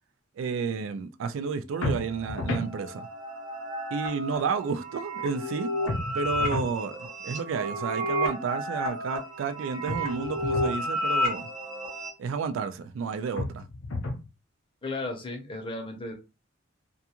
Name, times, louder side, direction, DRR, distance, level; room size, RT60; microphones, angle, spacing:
voice 1, 0.4-3.1 3.9-5.7 6.1-11.5 12.2-13.7, right 5 dB, 70° right, 0.3 m, -31 dB
sound 1, 1.7-12.1, equal, 35° right, 1.1 m, -32 dB
sound 2, 1.8-2.7 5.9-6.8 9.9-10.8 13.4-14.3, left 2 dB, 70° left, 0.6 m, -32 dB
voice 2, 14.8-16.1, left 2 dB, 25° left, 0.6 m, -34 dB
2.3 x 2.3 x 2.8 m
head